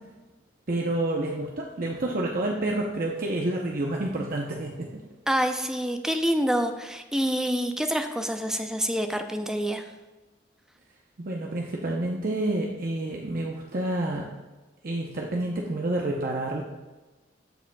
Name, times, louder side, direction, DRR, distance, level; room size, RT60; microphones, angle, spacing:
voice 1, 0.7-5.0 11.2-14.3 14.8-16.6, right 1 dB, 55° right, -1 dB, 0.7 m, -29 dB
voice 2, 5.3-9.8, equal, 5° right, 6 dB, 0.5 m, -27 dB
14.5 x 5.0 x 2.3 m, 1.2 s
head